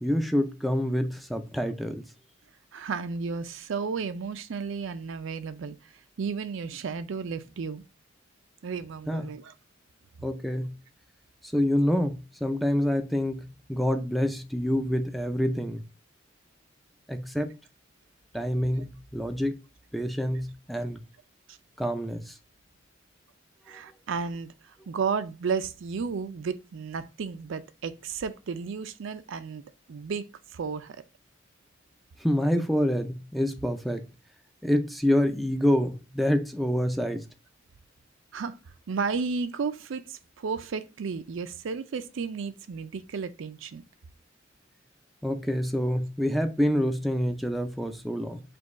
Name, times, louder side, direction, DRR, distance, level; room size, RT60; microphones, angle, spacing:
voice 1, 0.0-2.0 9.1-9.3 10.2-10.7 11.5-15.8 17.1-17.5 18.3-19.6 19.9-21.0 21.8-22.3 23.7-23.8 32.2-34.0 34.6-37.3 45.2-48.4, equal, ahead, 0.4 m, -27 dB
voice 2, 2.7-5.8 6.2-7.8 8.6-9.5 21.5-21.6 23.7-30.2 30.5-31.0 38.3-38.6 38.9-43.8, right 5 dB, 70° right, 0.4 m, -33 dB
5.1 x 2.3 x 3.6 m
head